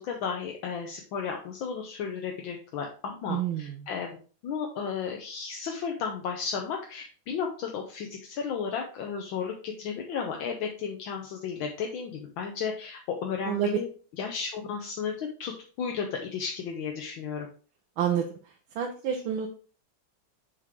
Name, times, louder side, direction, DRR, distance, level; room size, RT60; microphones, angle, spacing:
voice 1, 0.0-4.1 4.4-13.9 14.2-15.5 15.8-17.5, left 6 dB, 80° left, 2 dB, 1.6 m, -33 dB
voice 2, 3.3-3.9 13.4-13.8 18.0-19.5, right 9 dB, 90° right, 2 dB, 1.6 m, -29 dB
6.6 x 5.2 x 3.6 m, 0.39 s
omnidirectional pair, 2.2 m